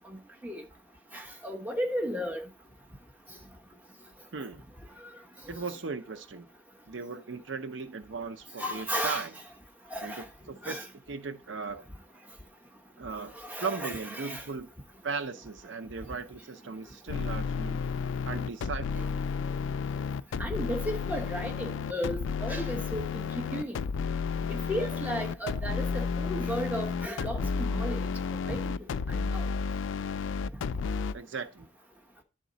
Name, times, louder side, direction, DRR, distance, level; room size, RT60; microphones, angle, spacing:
voice 1, 1.1-2.4 8.6-9.3 9.9-10.2 10.6-10.9 13.3-14.4 20.4-23.8 24.5-28.1 28.5-28.7 29.2-29.5, equal, 10° right, 0.8 m, -34 dB
voice 2, 5.5-6.5 6.9-9.3 10.0-11.8 13.0-13.3 13.6-14.7 15.0-17.8 18.2-19.1 31.1-31.7, right 4 dB, 75° right, 0.6 m, -37 dB
sound 1, 17.1-31.1, left 5 dB, 80° left, 0.3 m, -32 dB
10.0 x 3.7 x 3.9 m
head